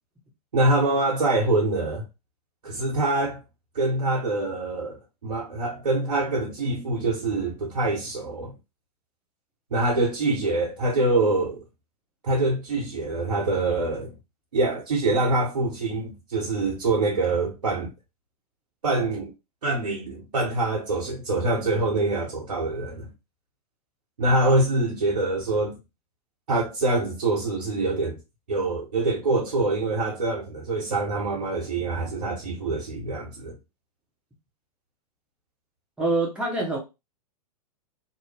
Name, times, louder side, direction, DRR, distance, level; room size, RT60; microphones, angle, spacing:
voice 1, 0.5-2.0 2.6-3.4 3.7-8.5 9.7-11.6 12.2-14.1 14.5-17.9 18.8-19.3 19.6-23.1 24.2-25.8 26.5-28.2 28.5-33.5, right 2 dB, 70° right, 0.9 m, -25 dB
voice 2, 36.0-36.8, right 2 dB, 5° right, 0.8 m, -25 dB
2.6 x 2.1 x 3.1 m
figure-of-eight pair, 105°, 20 cm